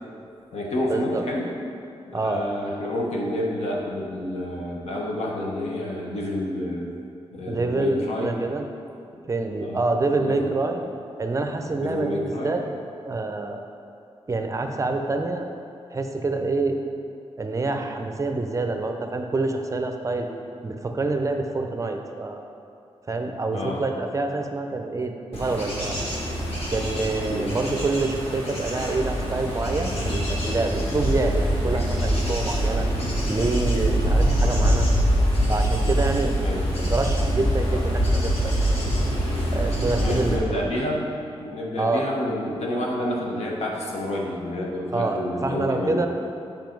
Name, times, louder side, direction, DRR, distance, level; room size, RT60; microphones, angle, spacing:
voice 1, 0.2-1.6 2.1-6.9 7.3-8.4 9.6-9.8 10.2-10.4 11.8-12.5 23.5-23.9 27.3-27.5 36.4-36.7 37.3-37.4 40.0-46.1, left 1 dB, 85° left, -2 dB, 1.2 m, -29 dB
voice 2, 0.9-1.2 2.1-2.4 7.5-8.7 9.3-10.8 11.2-12.6 13.0-13.6 14.3-15.5 15.9-16.8 17.4-20.3 20.6-22.4 23.1-26.0 26.7-32.9 33.3-34.9 35.5-36.4 36.7-38.5 39.5-40.6 41.8-42.1 44.9-46.1, right 3 dB, 30° right, 5 dB, 0.5 m, -26 dB
Bird / Insect / Wind, 25.3-40.3, equal, 70° left, 1.9 m, -24 dB
7.4 x 5.3 x 4.6 m, 2.6 s
wide cardioid pair, 115°, 11 cm